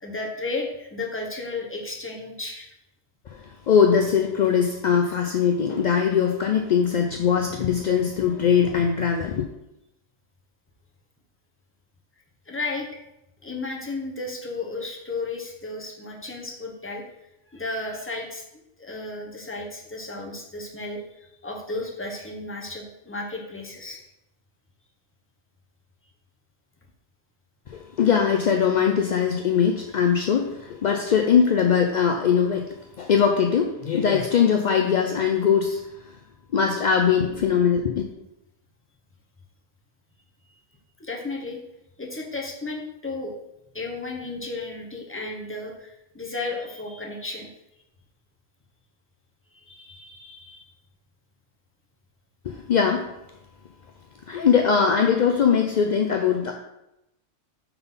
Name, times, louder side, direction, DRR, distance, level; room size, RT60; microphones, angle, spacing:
voice 1, 0.0-2.7 12.5-12.9 13.4-17.0 17.5-18.4 18.8-24.0 41.0-41.6 42.0-43.3 43.7-47.5 49.5-50.7, left 2 dB, 10° left, -1 dB, 0.9 m, -33 dB
voice 2, 3.3-9.4 27.7-32.7 33.0-35.8 36.1-36.2 36.5-38.0 52.4-53.1 54.3-56.5, left 7 dB, 60° left, 3 dB, 0.4 m, -21 dB
5.6 x 3.9 x 5.5 m, 0.88 s
omnidirectional pair, 1.3 m